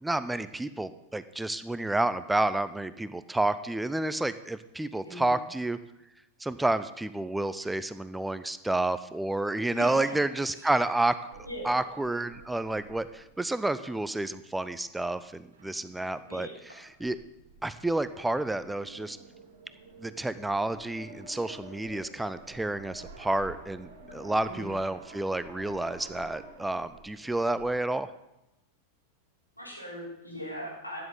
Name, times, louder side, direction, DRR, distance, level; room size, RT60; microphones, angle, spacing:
voice 1, 0.0-5.8 6.4-11.2 11.6-16.5 17.0-17.2 17.6-19.2 20.0-28.1, right 2 dB, 5° right, 14 dB, 0.4 m, -30 dB
voice 2, 9.7-10.1 10.5-10.7 11.4-11.8 16.3-16.5 24.4-24.7 29.6-31.0, equal, 90° left, -5 dB, 3.7 m, -40 dB
sound 1, 11.3-27.7, right 3 dB, 65° right, 2.0 m, -50 dB
12.0 x 9.5 x 3.8 m, 0.91 s
figure-of-eight pair, 90°, 0 cm